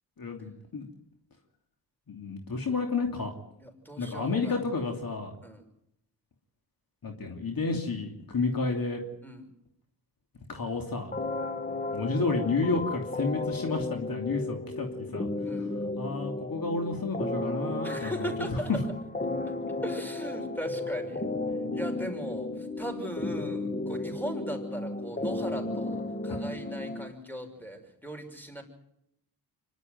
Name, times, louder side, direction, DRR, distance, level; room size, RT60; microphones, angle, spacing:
voice 1, 0.2-0.9 2.1-3.3 4.0-5.3 7.0-9.0 10.5-11.1 11.9-15.3 16.0-18.8 26.3-26.4, left 3 dB, 55° left, 3 dB, 2.9 m, -31 dB
voice 2, 3.6-4.6 5.4-5.6 9.2-9.4 15.4-15.7 17.8-18.7 19.8-21.2 21.7-28.6, equal, 5° left, 4 dB, 6.0 m, -38 dB
sound 1, 11.1-27.1, left 2 dB, 20° left, 1.5 m, -34 dB
25.0 x 12.5 x 9.3 m, 0.80 s
cardioid pair, 55°, 43 cm